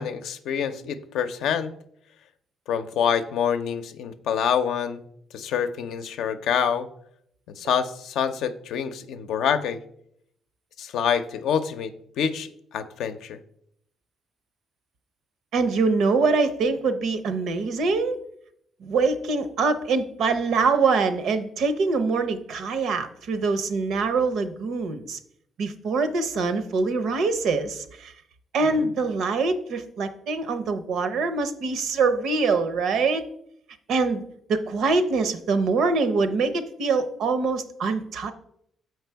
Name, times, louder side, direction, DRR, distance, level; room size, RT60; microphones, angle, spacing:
voice 1, 0.0-1.7 2.7-5.0 5.3-6.9 7.6-9.8 10.8-11.9 12.2-13.4 28.6-28.9, left 7 dB, 80° left, 9 dB, 0.5 m, -26 dB
voice 2, 15.5-18.2 18.8-25.2 25.6-28.1 28.5-33.2 33.9-34.2 34.5-38.3, right 4 dB, 75° right, 10 dB, 0.7 m, -24 dB
6.7 x 4.7 x 4.6 m, 0.71 s
cardioid pair, 90°, 0 cm